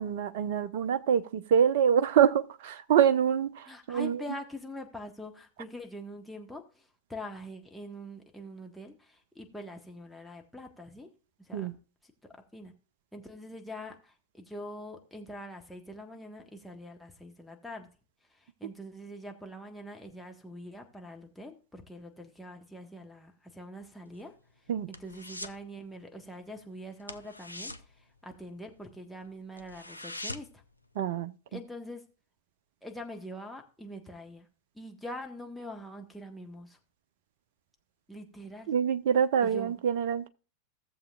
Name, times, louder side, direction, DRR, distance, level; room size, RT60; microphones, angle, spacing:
voice 1, 0.0-4.2 11.5-11.7 24.7-24.9 30.9-31.3 38.7-40.3, right 8 dB, 55° right, 0.7 m, -25 dB
voice 2, 3.6-11.1 11.4-11.7 12.2-12.7 13.1-17.9 18.3-24.3 24.9-30.6 31.5-32.0 32.8-34.5 34.7-36.8 38.1-38.7 39.4-39.8, equal, 5° left, 1.4 m, -44 dB
sound 1, 24.1-25.7 25.9-26.2 26.5-26.6 27.0-28.9 29.2-29.3 29.6-30.7 31.0-31.1, left 1 dB, 85° left, 0.6 m, -42 dB
17.0 x 7.2 x 2.4 m
figure-of-eight pair, 90°, 0 cm